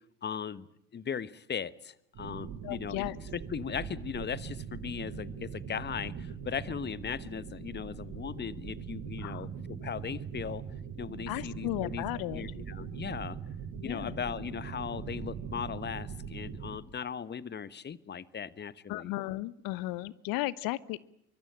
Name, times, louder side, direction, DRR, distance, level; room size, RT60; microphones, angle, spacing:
voice 1, 0.2-10.6 11.0-12.0 12.3-13.4 13.8-19.1, left 7 dB, 25° left, 17 dB, 1.3 m, -38 dB
sound 1, 2.1-16.8, right 7 dB, 45° right, 7.6 m, -41 dB
voice 2, 2.6-3.1 9.2-9.5 11.3-12.4 13.8-14.2 18.9-21.0, left 18 dB, 50° left, 20 dB, 1.1 m, -35 dB
25.0 x 24.0 x 8.9 m, 0.78 s
figure-of-eight pair, 70°, 44 cm